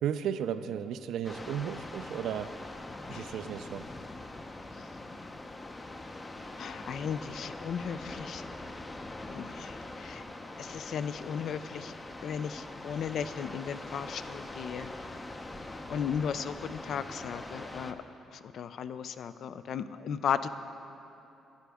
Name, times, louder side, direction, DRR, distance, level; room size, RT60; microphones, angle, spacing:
voice 1, 0.0-2.5 3.1-3.8, right 9 dB, 80° right, 10 dB, 0.3 m, -34 dB
sound 1, 1.2-17.9, left 2 dB, 25° left, 0.6 m, -43 dB
voice 2, 6.6-8.4 9.3-10.2 10.6-11.9 12.2-14.9 15.9-17.9 18.5-20.5, left 7 dB, 65° left, 12 dB, 0.4 m, -35 dB
12.5 x 9.9 x 3.5 m, 2.9 s
cardioid pair, 90°, 0 cm